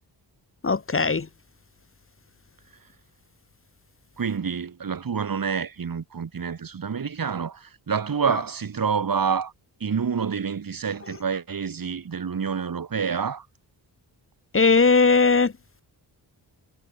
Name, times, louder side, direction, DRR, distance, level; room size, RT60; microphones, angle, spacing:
voice 1, 0.6-1.3 14.5-15.5, left 4 dB, 30° left, 1.9 m, -18 dB
voice 2, 4.2-9.5 9.8-13.5, right 6 dB, 55° right, 7.1 m, -28 dB
wide cardioid pair, 125°, 41 cm